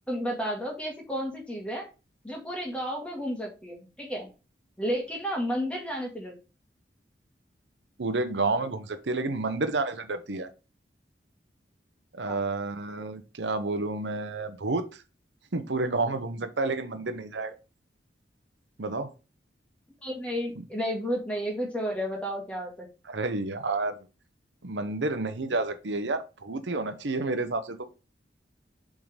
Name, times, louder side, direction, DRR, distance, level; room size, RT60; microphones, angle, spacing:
voice 1, 0.1-1.9 2.2-4.3 4.8-6.3 12.2-12.4 20.0-22.9, equal, 5° left, 0 dB, 2.0 m, -32 dB
voice 2, 8.0-10.5 12.1-15.0 15.5-17.5 18.8-19.1 23.1-24.0 24.6-27.9, right 3 dB, 85° right, 9 dB, 0.8 m, -30 dB
7.2 x 3.8 x 5.0 m, 0.31 s
head